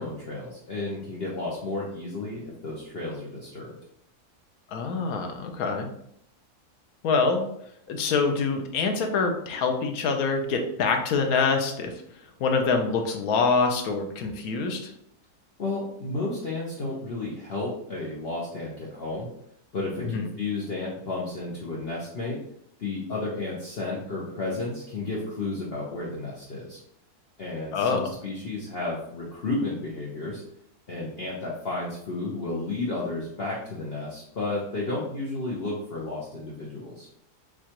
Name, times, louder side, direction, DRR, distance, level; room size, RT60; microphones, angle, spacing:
voice 1, 0.0-3.8 15.6-19.3 19.7-22.4 22.8-26.8 27.4-30.4 30.9-37.1, left 2 dB, 45° left, -5 dB, 0.9 m, -32 dB
voice 2, 4.7-5.9 7.0-7.5 7.9-11.9 12.4-14.9 20.0-20.3 27.7-28.1, left 4 dB, 70° left, 4 dB, 1.2 m, -25 dB
6.4 x 2.4 x 2.9 m, 0.73 s
omnidirectional pair, 1.7 m